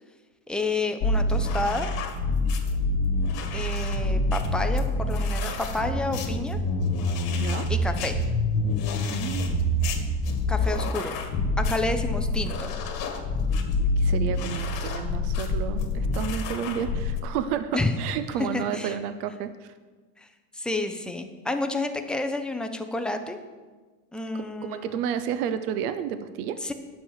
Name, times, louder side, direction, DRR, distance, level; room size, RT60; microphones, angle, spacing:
voice 1, 0.5-1.9 3.5-6.6 7.7-8.2 10.5-11.2 11.6-12.7 17.7-17.9 18.4-19.0 20.2-20.3 20.5-23.4 24.1-25.0 26.6-26.7, left 2 dB, ahead, 5 dB, 0.3 m, -30 dB
sound 1, 1.0-17.2, left 2 dB, 50° left, 2.0 m, -26 dB
voice 2, 7.3-7.7 9.1-9.6 14.0-19.7 24.3-26.6, right 8 dB, 70° right, 11 dB, 0.9 m, -31 dB
10.0 x 7.1 x 6.5 m, 1.4 s
supercardioid pair, 120°, 48 cm